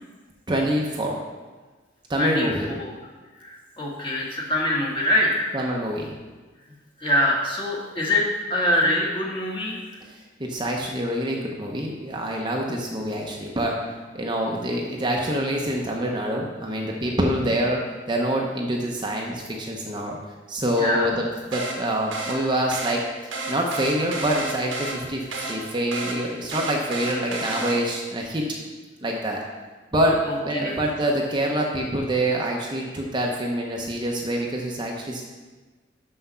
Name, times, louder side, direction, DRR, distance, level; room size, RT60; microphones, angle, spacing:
voice 1, 0.5-1.2 2.1-2.7 5.5-6.1 10.0-20.2 20.5-23.0 23.5-28.4 29.0-29.4 29.9-35.2, right 1 dB, 25° right, -1 dB, 0.8 m, -26 dB
voice 2, 2.2-2.9 3.4-5.5 7.0-9.8 20.8-21.1 30.2-30.8, left 1 dB, 25° left, -3 dB, 1.6 m, -24 dB
sound 1, 21.5-28.1, right 2 dB, 90° right, 1.4 m, -32 dB
6.4 x 5.9 x 5.6 m, 1.3 s
head